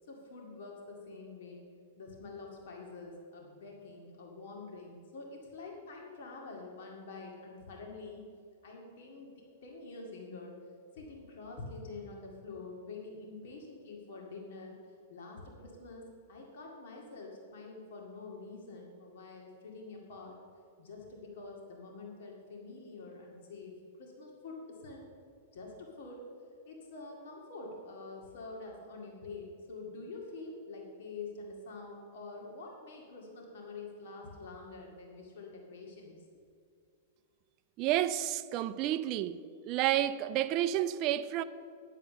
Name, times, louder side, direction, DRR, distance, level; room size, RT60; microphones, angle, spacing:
voice 1, 0.1-1.7 2.0-8.2 8.6-9.3 9.6-10.5 10.9-14.8 15.1-20.4 20.8-23.7 24.0-25.1 25.5-26.2 26.7-36.2, left 3 dB, 65° left, 2.1 m, -46 dB
voice 2, 37.8-39.4 39.6-41.4, right 12 dB, 35° right, 0.4 m, -30 dB
10.5 x 7.4 x 6.6 m
supercardioid pair, 160°, 0 cm